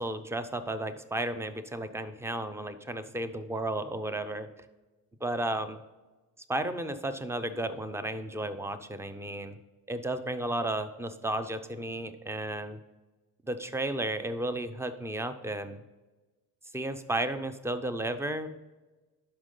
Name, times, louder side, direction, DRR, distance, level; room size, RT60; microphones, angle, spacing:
voice 1, 0.0-4.5 5.2-5.8 6.5-9.6 9.9-12.8 13.4-15.8 16.7-18.6, right 1 dB, 10° right, 10 dB, 0.6 m, -33 dB
11.5 x 5.4 x 3.8 m, 1.2 s
cardioid pair, 115°, 34 cm